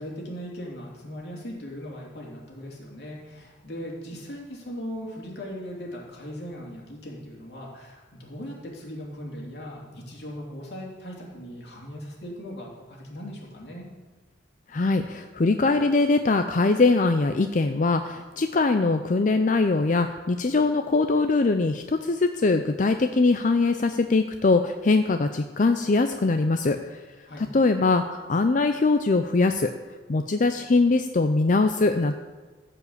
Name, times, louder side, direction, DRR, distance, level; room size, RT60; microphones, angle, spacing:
voice 1, 0.0-13.9 27.2-27.5, equal, 60° left, -2 dB, 3.0 m, -39 dB
voice 2, 14.7-27.0 27.4-29.7 30.1-32.1, left 3 dB, 45° left, 8 dB, 0.5 m, -22 dB
14.5 x 5.1 x 8.0 m, 1.3 s
head